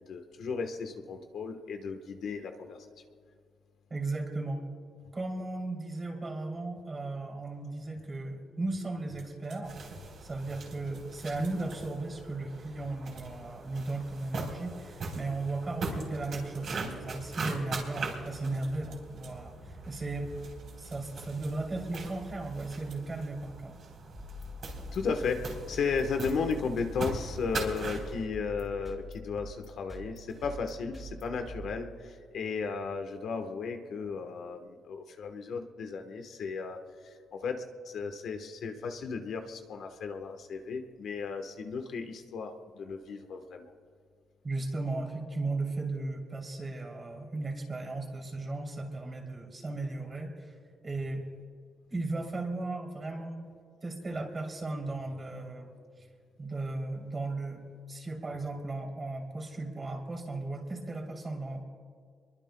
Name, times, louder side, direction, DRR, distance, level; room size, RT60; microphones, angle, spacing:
voice 1, 0.1-2.8 24.9-36.8 37.3-43.7, left 5 dB, 65° left, 5 dB, 1.2 m, -35 dB
voice 2, 3.9-4.6 5.1-9.8 10.2-20.3 20.8-23.8 44.4-50.5 50.8-51.2 51.9-53.5 53.8-55.7 56.0-56.1 56.4-57.6 57.9-61.6, right 2 dB, 25° right, 1 dB, 3.0 m, -36 dB
sound 1, 9.2-9.7 10.6-11.9 13.0-13.3 15.0-15.3 16.1-17.0 18.2-19.4 20.3-21.6 22.7-23.1, right 7 dB, 70° right, 3.2 m, -59 dB
sound 2, 9.6-28.1, right 3 dB, 50° right, 3.8 m, -41 dB
sound 3, 24.2-32.3, left 2 dB, 5° left, 3.5 m, -45 dB
27.5 x 22.5 x 2.3 m, 2.1 s
cardioid pair, 155°, 0 cm